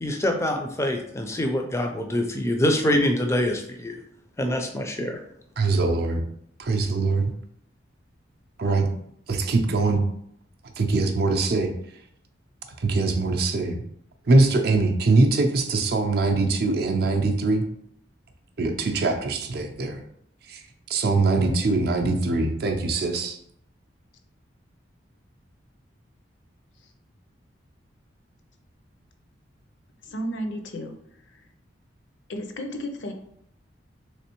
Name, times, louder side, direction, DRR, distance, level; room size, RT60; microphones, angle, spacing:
voice 1, 0.0-4.0 4.4-5.2, left 1 dB, 15° left, 4 dB, 0.3 m, -25 dB
voice 2, 5.6-6.2 6.6-7.3 8.6-8.9 9.3-10.0 10.8-11.7 12.8-13.8 14.3-17.6 18.6-20.0 20.5-20.6 20.9-23.4, right 3 dB, 55° right, 4 dB, 0.4 m, -22 dB
voice 3, 30.0-31.0 31.3-31.4 32.3-33.1, equal, 70° left, 5 dB, 0.5 m, -33 dB
3.4 x 3.2 x 2.9 m, 0.72 s
head